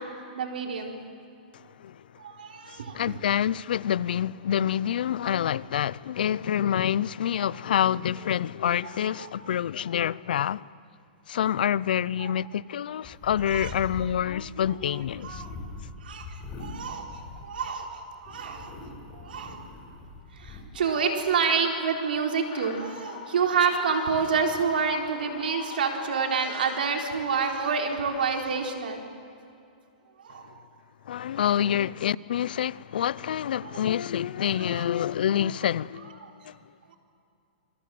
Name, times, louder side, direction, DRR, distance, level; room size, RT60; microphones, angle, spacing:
voice 1, 0.4-1.0 2.2-3.1 9.0-9.3 12.2-12.3 13.5-13.7 15.2-15.5 16.0-18.7 19.1-19.6 20.3-29.0 30.2-30.5 31.4-31.5 33.6-33.8 34.6-34.8 36.2-36.3, right 5 dB, 85° right, 4.1 m, -28 dB
voice 2, 2.7-10.7 11.3-15.4 31.1-36.2 36.4-36.5, left 10 dB, 80° left, 0.6 m, -27 dB
sound 1, 13.0-17.8 18.2-20.6, left 3 dB, 20° left, 5.4 m, -42 dB
sound 2, 20.8-28.3, left 8 dB, 60° left, 3.1 m, -43 dB
27.5 x 22.5 x 7.8 m
hypercardioid pair, 150°, 5 cm